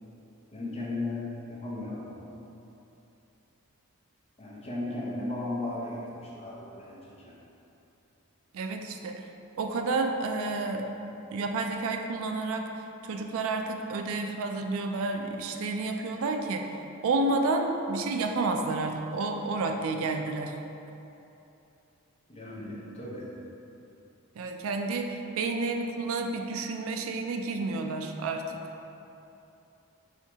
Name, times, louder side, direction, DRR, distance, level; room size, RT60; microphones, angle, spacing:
voice 1, 0.5-2.4 4.4-7.3 22.3-23.3, left 2 dB, 30° left, -6 dB, 0.7 m, -36 dB
voice 2, 8.5-9.2 9.6-10.9 11.3-12.7 13.0-16.7 17.0-20.6 24.4-28.6, right 3 dB, 65° right, 4 dB, 0.3 m, -30 dB
4.5 x 2.8 x 3.4 m, 2.9 s
head